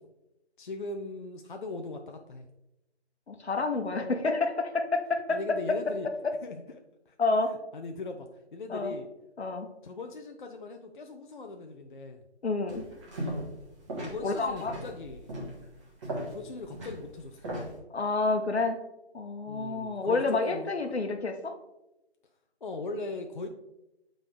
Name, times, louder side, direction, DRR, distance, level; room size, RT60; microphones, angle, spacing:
voice 1, 0.6-2.4 5.3-6.1 6.4-6.6 7.1-7.2 7.7-9.1 9.8-12.2 14.0-15.3 16.3-17.5 19.5-20.9 22.6-23.5, left 3 dB, 50° left, 4 dB, 0.5 m, -39 dB
voice 2, 3.3-5.4 7.2-7.5 8.7-8.9 9.4-9.7 12.4-12.8 14.2-14.7 17.9-18.8 19.1-21.6, left 3 dB, 75° left, 6 dB, 1.0 m, -29 dB
sound 1, 12.7-13.6 13.9-17.8, right 1 dB, 25° right, 1.6 m, -37 dB
8.0 x 3.8 x 3.2 m, 0.92 s
figure-of-eight pair, 150°, 33 cm